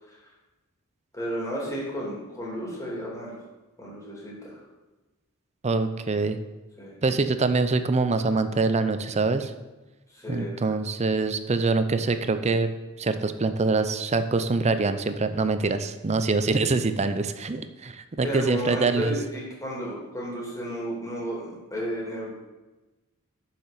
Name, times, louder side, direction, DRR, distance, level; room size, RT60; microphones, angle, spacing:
voice 1, 1.1-3.4 3.8-4.6 6.8-6.9 10.1-10.5 18.2-22.3, equal, 15° left, -4 dB, 2.6 m, -33 dB
voice 2, 5.6-6.4 7.0-9.5 10.3-12.7 13.0-19.2, right 3 dB, 30° right, 10 dB, 0.6 m, -24 dB
6.9 x 5.8 x 6.6 m, 1.1 s
head